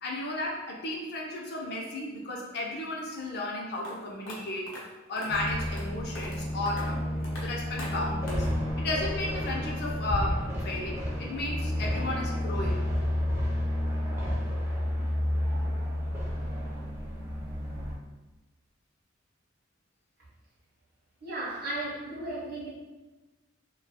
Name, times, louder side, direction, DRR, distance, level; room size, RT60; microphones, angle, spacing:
voice 1, 0.0-4.7 5.1-7.0 7.4-8.5 8.8-12.9, left 2 dB, 55° left, -2 dB, 0.5 m, -34 dB
sound 1, 3.8-3.9 4.3-4.4 4.7-4.8 5.2-5.3 5.6-5.8 6.1-6.4 6.7-6.8 7.2-7.4 7.8-7.9 8.3-8.5, left 1 dB, 85° left, 0.7 m, -42 dB
sound 2, 5.3-18.0, left 1 dB, 10° right, 0.4 m, -31 dB
voice 2, 21.2-22.7, right 1 dB, 50° right, -4 dB, 0.7 m, -35 dB
2.3 x 2.2 x 2.7 m, 1.2 s
head